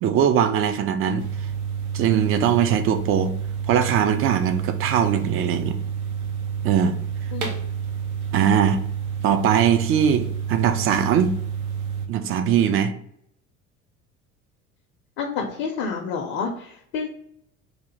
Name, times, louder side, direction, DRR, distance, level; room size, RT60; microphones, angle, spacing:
voice 1, 0.0-1.2 1.9-3.3 3.7-5.8 6.6-7.0 8.3-8.8 9.2-11.3 12.1-12.9, right 8 dB, 30° right, 0.4 m, -21 dB
sound 1, 1.2-12.1, right 7 dB, 80° right, 0.7 m, -29 dB
voice 2, 7.3-7.6 15.2-17.1, left 5 dB, 45° left, 0.7 m, -29 dB
3.3 x 2.7 x 3.8 m
figure-of-eight pair, 60°, 43 cm